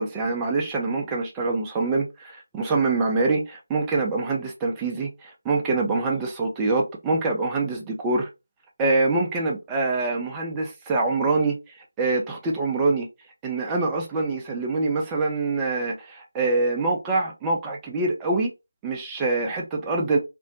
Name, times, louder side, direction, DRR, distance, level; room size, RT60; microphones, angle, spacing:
voice 1, 0.0-8.3 8.8-11.6 12.0-13.1 13.4-18.5 18.8-20.2, right 3 dB, 10° right, 0.4 m, -25 dB
2.5 x 2.0 x 2.6 m
figure-of-eight pair, 160°, 0 cm